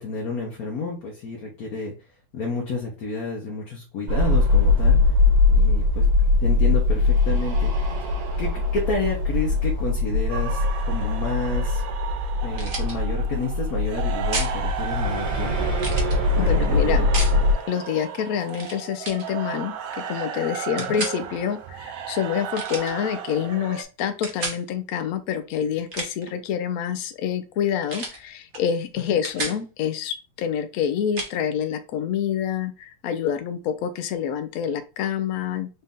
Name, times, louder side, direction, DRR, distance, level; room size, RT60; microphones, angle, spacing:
voice 1, 0.0-1.9 2.3-5.0 5.5-6.1 6.4-7.7 8.4-11.8 12.4-15.7 16.4-17.1 17.3-17.4 20.9-21.0 29.1-29.2, left 3 dB, 55° left, -1 dB, 1.1 m, -30 dB
sound 1, 4.1-17.5, left 3 dB, 60° right, 1.5 m, -21 dB
sound 2, 10.3-23.8, right 8 dB, 85° right, 0.7 m, -35 dB
sound 3, 12.5-12.9 14.3-14.6 15.8-16.2 17.1-17.4 18.5-18.8 19.0-19.3 20.8-21.2 22.5-22.9 24.2-24.6 25.7-26.3 27.9-28.2 28.5-28.7 29.0-29.6 31.2-31.3, right 2 dB, 40° right, 0.7 m, -31 dB
voice 2, 16.4-17.1 17.7-19.7 20.1-35.7, left 8 dB, 75° left, 10 dB, 0.8 m, -27 dB
4.1 x 2.6 x 3.5 m, 0.31 s
omnidirectional pair, 2.1 m